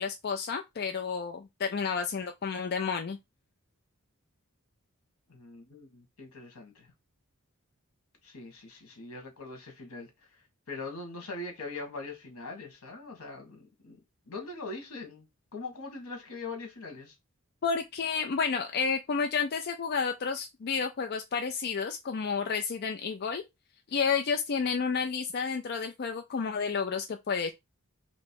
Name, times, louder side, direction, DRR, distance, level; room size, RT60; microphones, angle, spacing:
voice 1, 0.0-3.2 17.6-23.4 23.9-27.5, left 5 dB, 45° left, 0.4 m, -31 dB
voice 2, 5.3-6.9 8.2-10.1 10.7-14.0 14.3-15.3 15.5-17.1, left 3 dB, 80° left, 1.6 m, -42 dB
3.1 x 3.0 x 4.5 m
head